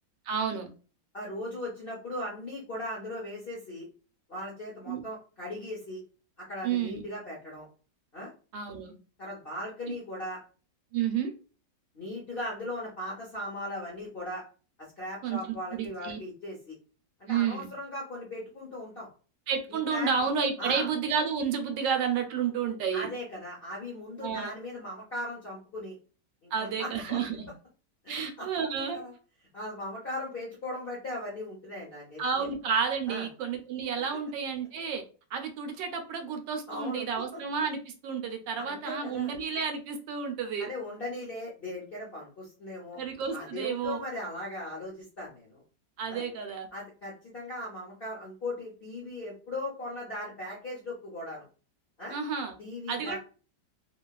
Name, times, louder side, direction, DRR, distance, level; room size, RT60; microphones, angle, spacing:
voice 1, 0.3-0.7 4.9-5.0 6.6-7.0 8.5-8.9 10.9-11.3 15.2-15.4 15.7-16.2 17.3-17.7 19.5-23.1 24.2-24.5 26.5-27.5 28.1-29.0 32.2-35.0 35.3-40.7 42.9-44.0 46.0-46.7 52.1-52.5 52.9-53.2, right 6 dB, 85° right, 5 dB, 1.3 m, -31 dB
voice 2, 1.1-3.9 4.3-6.0 6.4-7.7 8.1-8.3 9.2-10.4 11.9-14.4 15.0-16.8 17.2-19.1 19.7-20.1 20.6-20.9 22.9-25.9 26.4-27.2 28.0-28.5 28.9-29.1 29.5-32.5 33.1-33.3 36.7-37.1 37.3-37.4 38.6-39.3 40.6-43.0 43.3-45.6 46.1-46.3 46.7-51.4 52.0-52.1 52.6-53.2, left 1 dB, 55° left, -4 dB, 0.6 m, -38 dB
3.0 x 2.3 x 2.2 m, 0.37 s
omnidirectional pair, 1.9 m